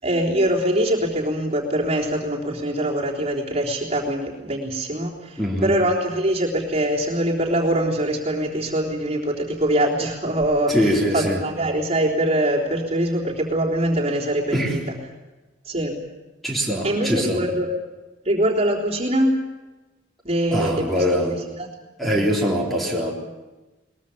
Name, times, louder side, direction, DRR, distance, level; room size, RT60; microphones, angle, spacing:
voice 1, 0.0-14.8 15.7-16.0 16.8-17.7 18.2-19.4 20.2-21.7 22.1-22.3, right 1 dB, 35° right, -3 dB, 3.6 m, -23 dB
voice 2, 5.4-5.8 10.7-11.4 14.5-14.8 16.4-17.4 20.5-21.4 22.0-23.1, equal, ahead, -2 dB, 3.6 m, -22 dB
22.0 x 21.5 x 7.4 m, 1.1 s
head